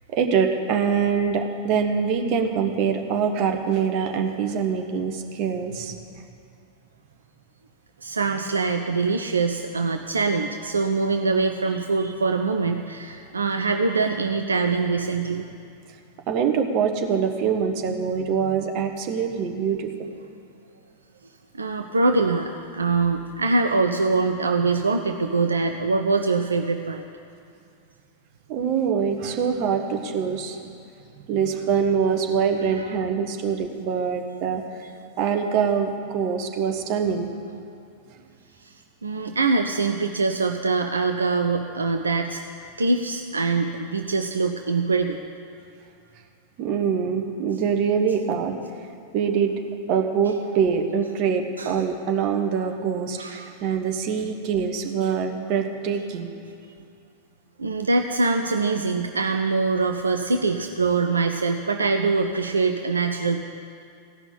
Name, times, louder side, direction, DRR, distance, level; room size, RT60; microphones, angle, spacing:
voice 1, 0.1-6.2 16.3-19.9 28.5-30.6 31.2-34.9 35.2-37.3 46.6-48.6 49.1-49.5 49.9-56.3, right 6 dB, 40° right, 4 dB, 1.2 m, -24 dB
voice 2, 8.0-15.4 21.5-27.0 32.7-32.9 38.6-42.4 42.8-45.2 51.6-51.7 53.2-53.5 57.6-63.4, right 3 dB, 75° right, 5 dB, 0.5 m, -23 dB
16.0 x 5.9 x 8.7 m, 2.5 s
figure-of-eight pair, 90°, 0 cm